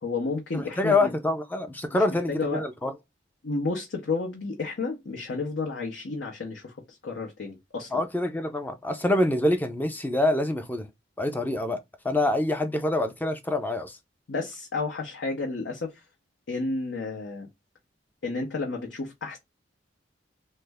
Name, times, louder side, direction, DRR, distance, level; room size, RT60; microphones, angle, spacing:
voice 1, 0.0-1.1 2.3-2.6 3.4-8.0 14.3-16.0 16.5-17.5 18.2-19.4, left 3 dB, 70° left, 0.7 m, -31 dB
voice 2, 0.5-2.9 7.9-10.9 11.2-14.0, left 2 dB, 10° left, 0.4 m, -26 dB
3.2 x 2.1 x 3.3 m
head